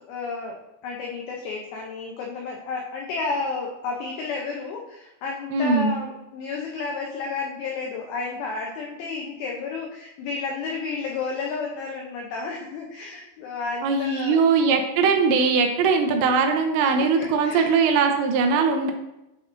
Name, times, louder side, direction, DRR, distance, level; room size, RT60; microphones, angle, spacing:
voice 1, 0.1-0.6 0.8-14.4 16.8-17.8, left 4 dB, 90° left, 0 dB, 2.1 m, -32 dB
voice 2, 5.5-6.0 13.8-18.9, right 5 dB, 80° right, 4 dB, 2.9 m, -20 dB
9.9 x 4.3 x 2.5 m, 0.92 s
omnidirectional pair, 5.2 m